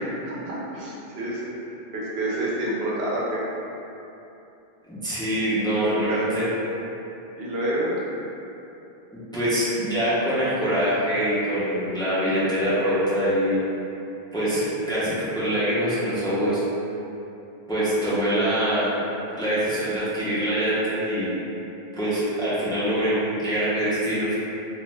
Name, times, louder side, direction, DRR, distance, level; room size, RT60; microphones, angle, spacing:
voice 1, 0.2-1.5 1.9-3.4 5.8-6.4 7.4-8.0, right 1 dB, 75° right, -6 dB, 0.9 m, -28 dB
voice 2, 4.9-6.5 9.3-13.6 14.3-16.6 17.7-19.0 19.4-21.3 22.0-24.4, equal, 5° left, -11 dB, 0.5 m, -24 dB
2.5 x 2.1 x 3.1 m, 2.9 s
omnidirectional pair, 1.0 m